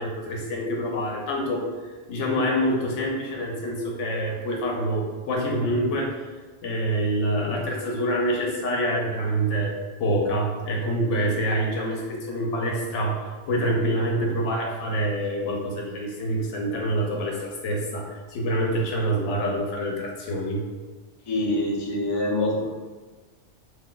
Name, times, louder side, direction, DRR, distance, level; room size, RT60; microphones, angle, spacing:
voice 1, 0.0-1.6 2.1-6.2 6.6-9.7 10.0-20.6, right 1 dB, 80° left, -1 dB, 1.0 m, -26 dB
voice 2, 21.3-22.6, left 1 dB, 30° left, -4 dB, 0.4 m, -25 dB
2.5 x 2.2 x 3.8 m, 1.3 s
omnidirectional pair, 1.2 m